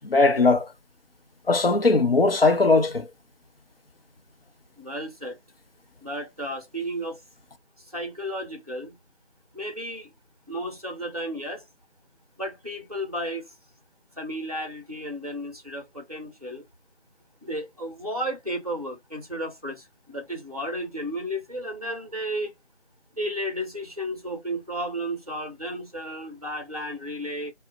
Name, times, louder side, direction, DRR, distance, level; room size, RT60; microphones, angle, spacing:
voice 1, 0.0-0.7 1.5-3.1, left 3 dB, 55° left, 0.6 m, -19 dB
voice 2, 4.8-5.4 6.0-7.2 7.9-9.0 9.5-10.1 10.5-11.6 12.4-13.5 14.2-16.6 17.4-22.6 23.2-27.5, equal, 35° right, 0.7 m, -33 dB
2.4 x 2.1 x 3.8 m
figure-of-eight pair, 175°, 35 cm